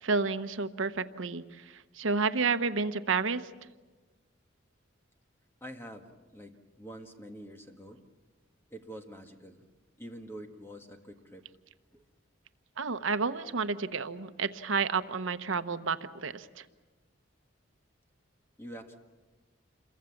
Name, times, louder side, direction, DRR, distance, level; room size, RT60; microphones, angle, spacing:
voice 1, 0.0-3.5 12.8-16.6, right 4 dB, 75° right, 10 dB, 0.9 m, -31 dB
voice 2, 5.6-8.1 8.7-9.7 10.0-11.5 11.9-12.1 18.6-19.0, right 1 dB, 10° left, 4 dB, 1.7 m, -46 dB
28.0 x 23.0 x 7.2 m, 1.2 s
head